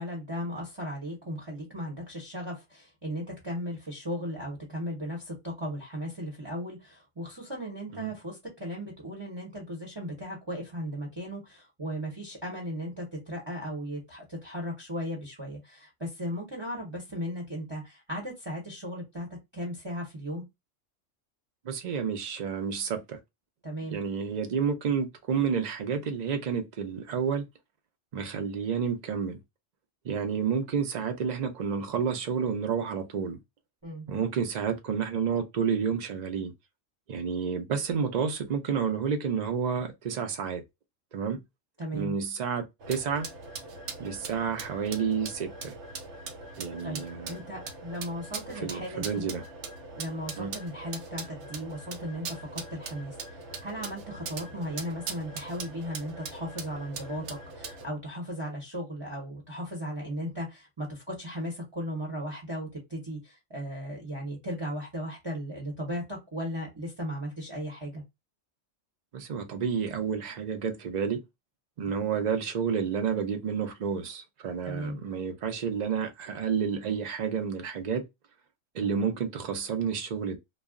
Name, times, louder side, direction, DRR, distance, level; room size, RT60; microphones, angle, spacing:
voice 1, 0.0-19.3 19.5-20.4 23.6-24.0 33.8-34.1 41.8-42.1 46.8-49.2 49.9-68.0 74.6-75.0, equal, 25° right, 0.8 m, -36 dB
voice 2, 21.6-23.2 23.9-27.5 28.1-29.4 30.0-33.4 34.1-36.5 37.1-40.6 41.1-41.4 41.9-43.3 44.0-45.7 46.6-47.4 48.6-49.4 50.4-50.5 69.1-71.2 71.8-78.0 78.7-80.4, right 6 dB, 50° right, 0.5 m, -30 dB
sound 1, 42.8-57.9, right 4 dB, 70° right, 0.9 m, -41 dB
2.3 x 2.0 x 3.5 m
omnidirectional pair, 1.3 m